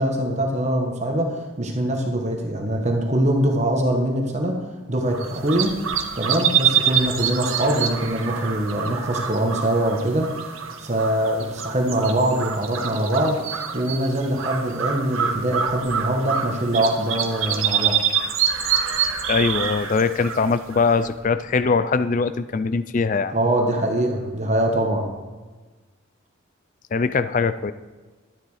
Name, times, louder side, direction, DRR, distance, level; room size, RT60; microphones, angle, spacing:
voice 1, 0.0-4.6 4.9-5.7 6.1-10.3 10.8-13.4 13.7-18.0 23.3-25.1, right 1 dB, 35° right, 2 dB, 1.3 m, -23 dB
sound 1, 5.1-21.2, right 8 dB, 80° right, 1.5 m, -26 dB
voice 2, 19.3-23.3 26.9-27.7, left 4 dB, 40° left, 13 dB, 0.4 m, -21 dB
12.0 x 10.5 x 4.9 m, 1.3 s
head